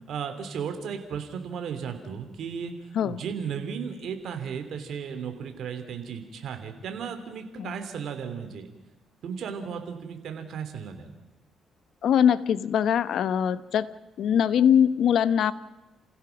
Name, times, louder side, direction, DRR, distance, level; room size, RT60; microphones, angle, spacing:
voice 1, 0.1-2.7 3.0-8.7 9.2-11.1, right 7 dB, 70° right, 6 dB, 3.1 m, -35 dB
voice 2, 12.0-13.9 14.2-15.5, left 9 dB, 70° left, 15 dB, 1.0 m, -22 dB
29.0 x 16.5 x 6.0 m, 1.0 s
cardioid pair, 90°, 0 cm